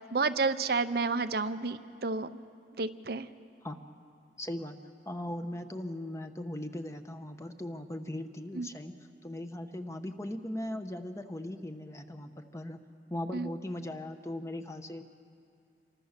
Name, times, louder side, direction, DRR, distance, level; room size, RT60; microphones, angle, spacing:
voice 1, 0.0-2.3 2.8-3.3 8.6-8.7 13.3-13.5, right 4 dB, 60° right, 10 dB, 0.7 m, -30 dB
voice 2, 4.4-4.8 5.1-8.9 9.2-12.8 13.1-15.0, left 1 dB, 15° left, 7 dB, 1.0 m, -38 dB
27.0 x 24.0 x 6.7 m, 2.5 s
head